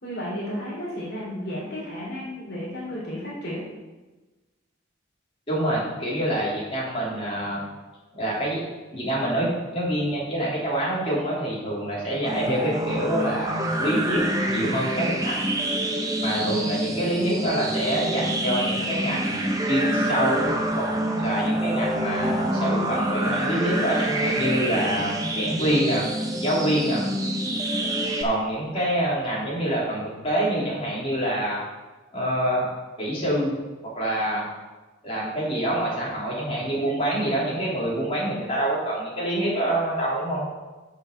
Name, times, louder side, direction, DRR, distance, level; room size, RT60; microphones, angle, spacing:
voice 1, 0.0-3.6 16.3-16.4, equal, 55° left, -6 dB, 3.5 m, -33 dB
voice 2, 5.5-7.7 8.1-8.6 8.9-14.2 14.5-15.4 16.2-20.8 21.1-26.1 26.4-27.0 28.2-31.6 32.1-32.7 33.0-33.5 33.9-34.5 35.0-40.4, right 1 dB, 30° left, -6 dB, 3.2 m, -26 dB
sound 1, 12.2-28.2, right 1 dB, 20° right, 0.8 m, -26 dB
6.7 x 6.5 x 6.6 m, 1.2 s
head